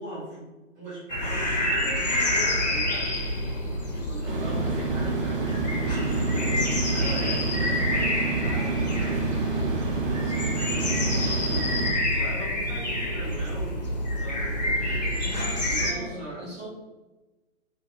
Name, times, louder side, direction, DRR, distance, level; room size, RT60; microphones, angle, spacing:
voice 1, 0.0-3.2 3.9-6.6 6.9-9.2 10.2-11.4 11.8-16.6, right 1 dB, 10° right, -11 dB, 0.9 m, -40 dB
sound 1, 1.1-15.9, left 1 dB, 35° left, 0.4 m, -28 dB
sound 2, 4.2-11.9, right 4 dB, 45° right, 0.5 m, -29 dB
voice 2, 10.2-10.7 15.2-16.7, equal, 70° right, -4 dB, 1.3 m, -41 dB
2.7 x 2.7 x 2.3 m, 1.1 s
figure-of-eight pair, 135°, 40 cm